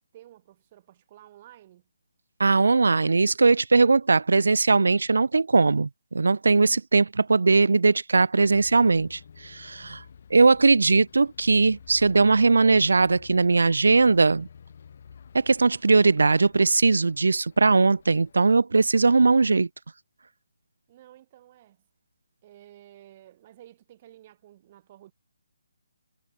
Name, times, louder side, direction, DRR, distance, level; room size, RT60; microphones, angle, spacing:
voice 1, 0.1-1.9 20.9-21.8 22.4-25.1, right 13 dB, 30° right, 2.6 m, -52 dB
voice 2, 2.4-10.0 10.3-14.5 15.3-19.7, right 3 dB, 75° right, 0.4 m, -20 dB
Bus, 8.4-18.4, left 7 dB, 50° left, 6.3 m, -51 dB
figure-of-eight pair, 155°, 0 cm